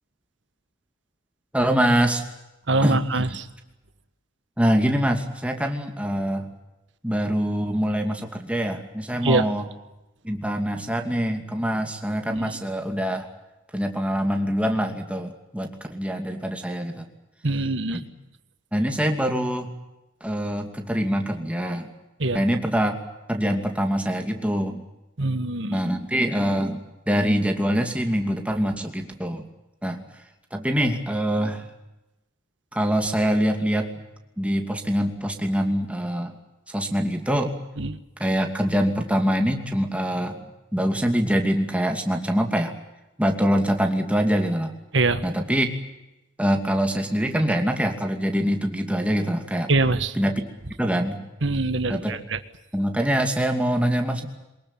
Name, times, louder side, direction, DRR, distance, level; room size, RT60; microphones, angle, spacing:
voice 1, 1.5-2.2 2.8-3.0 4.6-6.5 7.0-9.6 10.2-13.3 13.7-17.1 17.9-18.1 18.7-19.7 20.2-21.9 22.3-23.0 23.3-24.8 25.7-29.4 29.8-30.0 30.5-31.7 32.7-34.1 34.4-36.3 36.7-37.5 38.2-40.4 40.7-42.7 43.2-44.7 45.2-45.7 46.4-49.7 50.2-50.4 50.8-51.3 51.9-52.2 52.7-54.3, equal, 5° right, 4 dB, 2.6 m, -24 dB
voice 2, 2.7-3.5 9.2-9.5 12.3-12.5 17.4-18.0 22.2-22.4 25.2-25.8 37.8-38.0 44.9-45.2 49.7-50.1 51.4-52.4, right 2 dB, 65° right, 11 dB, 1.6 m, -23 dB
23.5 x 21.0 x 9.0 m, 0.99 s
head